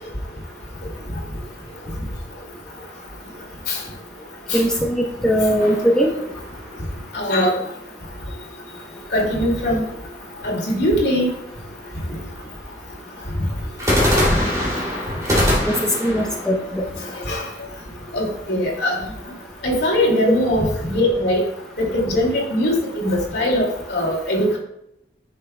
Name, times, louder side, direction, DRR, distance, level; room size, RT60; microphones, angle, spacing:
voice 1, 4.5-6.1 15.6-15.7 16.0-16.8, equal, 5° left, -1 dB, 0.8 m, -20 dB
sound 1, 5.6-7.0 13.8-17.7, left 1 dB, 20° right, 2.6 m, -23 dB
voice 2, 7.1-7.5 9.1-9.8 10.4-11.3 17.3-17.4 18.1-19.0 19.6-21.4 21.8-24.6, left 1 dB, 70° left, -1 dB, 2.3 m, -20 dB
9.9 x 6.2 x 2.2 m, 0.82 s
head